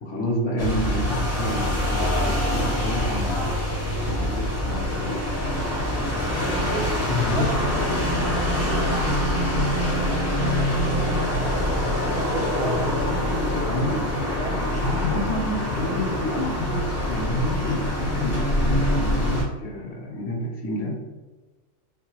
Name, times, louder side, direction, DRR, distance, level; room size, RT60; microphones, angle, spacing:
voice 1, 0.0-3.6 4.1-5.3 6.3-6.9 7.2-7.6 13.6-14.1 14.7-21.0, left 1 dB, 65° left, -1 dB, 0.7 m, -29 dB
sound 1, 0.6-19.4, left 1 dB, 25° left, 0.4 m, -24 dB
voice 2, 6.4-9.1 9.7-14.6, right 2 dB, 60° right, -1 dB, 0.9 m, -34 dB
2.4 x 2.1 x 2.9 m, 1.3 s
omnidirectional pair, 1.4 m